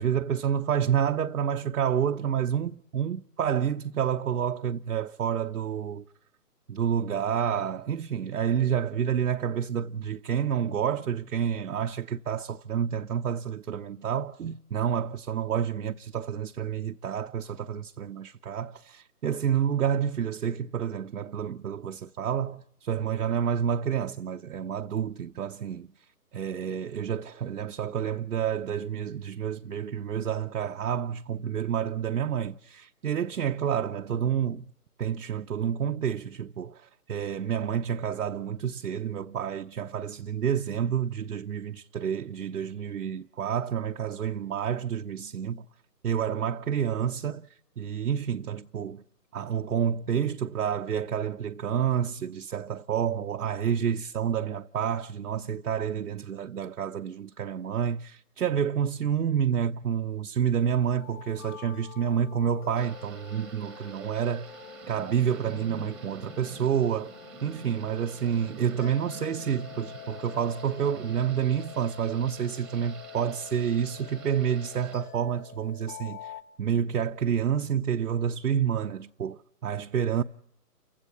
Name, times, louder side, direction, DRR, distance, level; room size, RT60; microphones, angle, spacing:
voice 1, 0.0-6.0 6.7-25.9 26.3-34.7 35.0-45.7 46.0-49.0 49.3-64.6 64.9-67.1 67.4-80.2, right 8 dB, 65° right, 0.8 m, -29 dB
sound 1, 60.9-76.4, left 8 dB, 65° left, 1.4 m, -47 dB
Thunder / Rain, 62.8-74.9, right 3 dB, ahead, 1.2 m, -48 dB
29.0 x 16.0 x 8.3 m
hypercardioid pair, 160°, 48 cm